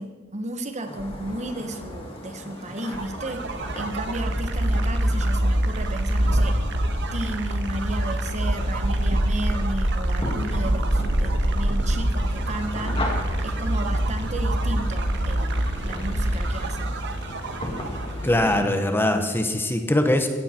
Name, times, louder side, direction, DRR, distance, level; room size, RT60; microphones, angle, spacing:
voice 1, 0.0-6.6 7.1-13.1 13.4-17.0, right 1 dB, 35° right, 7 dB, 1.2 m, -33 dB
sound 1, 0.8-18.6, left 1 dB, 25° left, 2.5 m, -36 dB
sound 2, 2.7-18.4, right 1 dB, 55° right, 1.4 m, -25 dB
voice 2, 18.2-20.3, left 1 dB, 10° left, 6 dB, 1.1 m, -22 dB
16.5 x 16.0 x 4.4 m, 1.4 s
head